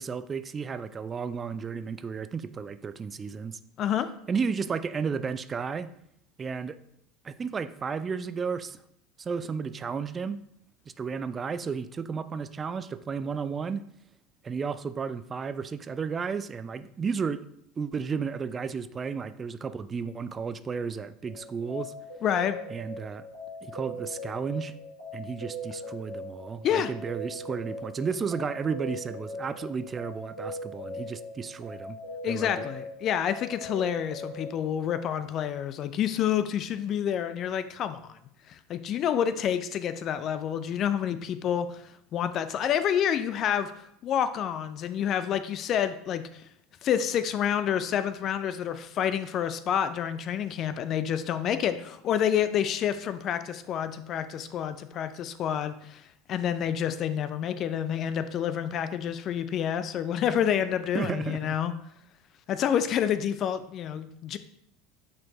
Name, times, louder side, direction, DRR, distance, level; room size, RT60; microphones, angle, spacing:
voice 1, 0.0-3.6 4.3-5.9 6.4-6.8 7.2-8.8 9.2-10.4 11.0-13.8 14.4-17.4 17.8-21.9 22.7-23.3 23.6-24.7 25.1-32.0 32.3-32.7 60.9-61.5, right 5 dB, 25° right, 12 dB, 0.3 m, -33 dB
sound 1, 21.3-34.5, left 1 dB, 75° left, 2.6 m, -40 dB
voice 2, 22.2-22.6 26.6-26.9 32.2-38.2 38.5-41.8 42.1-46.4 46.8-56.0 56.3-61.7 62.5-64.4, left 9 dB, 40° left, 12 dB, 0.4 m, -28 dB
8.5 x 4.3 x 3.0 m, 0.73 s
figure-of-eight pair, 75°, 0 cm